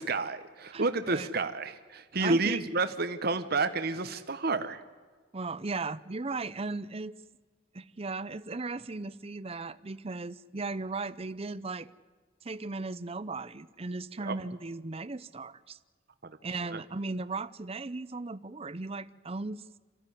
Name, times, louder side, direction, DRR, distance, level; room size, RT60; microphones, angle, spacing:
voice 1, 0.0-4.8 14.2-14.4 16.2-16.3 16.7-16.8, right 3 dB, 55° right, 1.1 m, -30 dB
voice 2, 0.7-1.3 2.2-2.6 5.3-7.1 7.7-11.9 12.4-15.8 16.4-19.6, right 3 dB, 30° right, 0.7 m, -37 dB
26.5 x 15.0 x 9.9 m
head